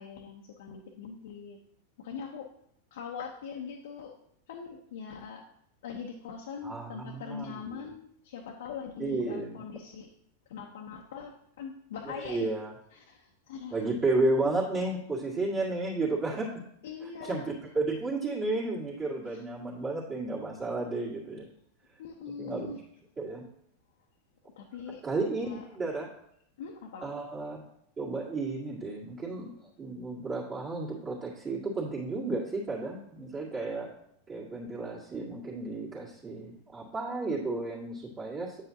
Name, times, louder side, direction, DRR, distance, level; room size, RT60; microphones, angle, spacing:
voice 1, 0.0-1.6 2.0-2.5 2.9-4.1 4.5-5.4 5.8-10.1 10.5-12.5 12.9-13.8 16.8-17.4 19.3-19.4 22.0-22.8 24.6-25.0 25.4-25.6 26.6-27.1, left 6 dB, 60° left, 0 dB, 0.9 m, -42 dB
voice 2, 6.6-7.5 9.0-9.6 12.2-12.7 13.7-16.5 17.0-17.4 17.7-21.5 22.4-22.7 23.2-23.4 25.0-26.1 27.0-27.6 28.0-29.5 29.8-33.9 34.3-38.6, right 2 dB, 25° right, -6 dB, 2.0 m, -32 dB
9.2 x 7.6 x 2.8 m, 0.71 s
figure-of-eight pair, 90°, 0 cm